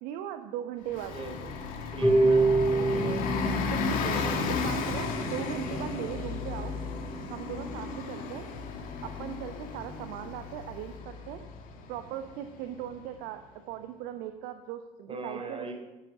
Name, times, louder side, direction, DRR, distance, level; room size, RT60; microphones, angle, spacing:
voice 1, 0.0-1.2 3.7-4.2 4.5-6.8 7.3-8.5 9.0-11.4 11.9-15.7, right 11 dB, 55° right, 8 dB, 1.0 m, -38 dB
Bus, 0.9-13.2, left 5 dB, 50° left, 2.3 m, -34 dB
voice 2, 1.1-1.5 1.9-2.4 2.7-3.2 15.1-15.7, right 2 dB, 35° right, 3 dB, 4.3 m, -38 dB
Harp, 2.0-8.1, right 3 dB, 5° right, 4.8 m, -29 dB
13.5 x 10.5 x 7.6 m, 1.2 s
figure-of-eight pair, 60°, 17 cm